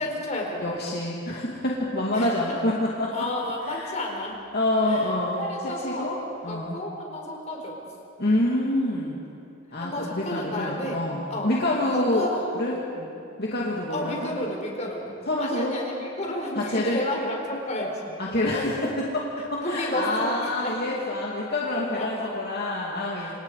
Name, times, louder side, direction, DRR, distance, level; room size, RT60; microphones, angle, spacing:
voice 1, 0.0-0.6 2.1-2.4 3.1-4.4 4.8-5.1 5.4-6.1 6.5-7.8 9.8-11.0 11.3-11.5 11.9-13.1 13.9-15.1 15.4-18.2 19.6-20.8 21.7-22.3 23.1-23.3, left 1 dB, 35° left, 0 dB, 4.5 m, -32 dB
voice 2, 0.6-3.3 3.7-3.9 4.5-5.5 5.8-6.2 6.4-6.8 8.2-9.2 9.7-12.2 12.5-12.8 13.4-14.2 15.3-15.7 16.6-17.0 18.2-23.3, left 1 dB, 50° left, -4 dB, 2.6 m, -27 dB
28.5 x 27.5 x 5.0 m, 2.6 s
head